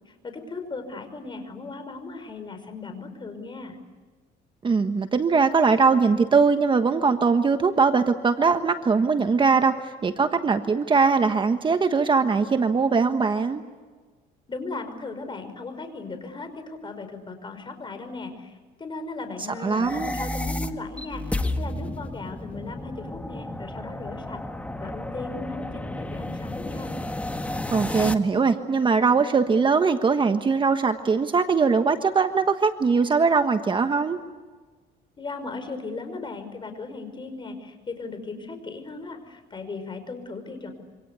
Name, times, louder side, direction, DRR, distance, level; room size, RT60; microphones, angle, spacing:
voice 1, 0.0-3.8 14.5-24.4 24.8-26.9 35.2-40.7, left 3 dB, 30° left, 8 dB, 5.6 m, -37 dB
voice 2, 4.6-13.6 19.6-20.1 27.7-34.2, right 5 dB, 30° right, 8 dB, 1.3 m, -21 dB
sound 1, 19.6-28.1, left 1 dB, 10° left, 1.7 m, -32 dB
27.0 x 26.0 x 8.4 m, 1.4 s
cardioid pair, 110°, 17 cm